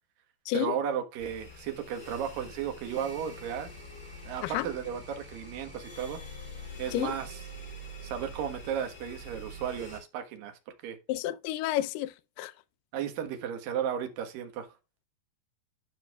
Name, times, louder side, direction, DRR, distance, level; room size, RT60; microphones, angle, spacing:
voice 1, 0.5-3.7 4.2-6.2 6.8-7.4 8.0-11.0 12.9-14.7, right 8 dB, 70° right, 2.9 m, -34 dB
sound 1, 1.2-10.0, equal, 25° left, 4.7 m, -45 dB
voice 2, 11.1-12.1 12.4-12.5, left 14 dB, 80° left, 2.1 m, -30 dB
12.5 x 5.5 x 2.3 m
omnidirectional pair, 4.4 m